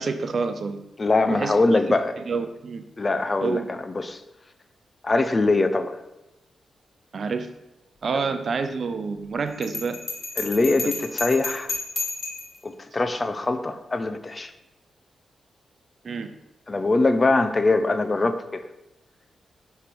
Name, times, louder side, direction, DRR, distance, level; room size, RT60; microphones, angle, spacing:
voice 1, 0.0-0.8 1.3-1.8 2.2-2.8 3.4-3.7 7.1-7.5 8.0-10.0 16.0-16.3, right 4 dB, 60° right, 9 dB, 0.5 m, -28 dB
voice 2, 1.0-2.1 3.0-4.2 5.0-6.0 8.1-8.2 10.4-11.7 12.6-14.5 16.7-18.6, left 3 dB, 40° left, 10 dB, 0.5 m, -22 dB
Bell, 9.6-12.6, left 3 dB, 55° left, 1.5 m, -31 dB
5.8 x 3.3 x 5.2 m, 0.95 s
supercardioid pair, 45°, 0 cm